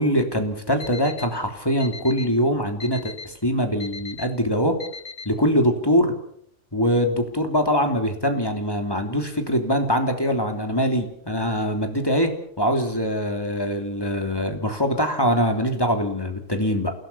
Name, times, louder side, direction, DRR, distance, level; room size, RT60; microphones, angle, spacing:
voice 1, 0.0-4.8 5.2-6.1 6.7-16.9, equal, 20° left, 5 dB, 3.2 m, -23 dB
Alarm, 0.8-1.2 1.8-2.2 2.8-3.2 3.8-4.2 4.8-5.2, left 4 dB, 60° left, 2.1 m, -36 dB
28.0 x 17.5 x 7.0 m, 0.66 s
omnidirectional pair, 1.3 m